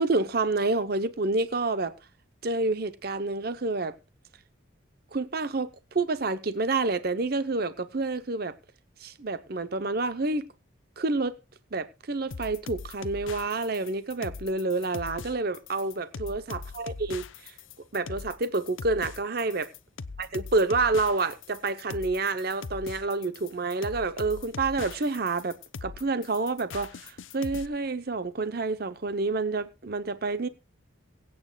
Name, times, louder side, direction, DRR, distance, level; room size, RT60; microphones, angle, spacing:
voice 1, 0.0-1.9 2.4-3.9 5.1-8.5 9.0-10.5 11.0-11.3 11.7-17.5 17.9-19.7 20.3-30.5, right 3 dB, 50° right, 0.7 m, -28 dB
sound 1, 12.3-27.7, left 4 dB, 80° left, 0.7 m, -40 dB
23.5 x 8.8 x 2.3 m
head